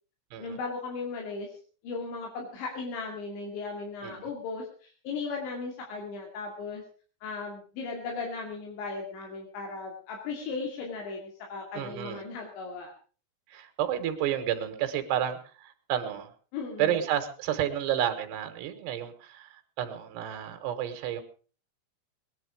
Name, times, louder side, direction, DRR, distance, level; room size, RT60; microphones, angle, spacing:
voice 1, 0.4-1.5 1.8-6.8 7.2-12.9 16.5-16.9, left 4 dB, 85° left, 0 dB, 4.7 m, -36 dB
voice 2, 11.8-12.2 13.5-16.3 16.8-21.2, right 10 dB, 75° right, 7 dB, 3.5 m, -31 dB
20.5 x 10.5 x 4.9 m, 0.39 s
omnidirectional pair, 5.0 m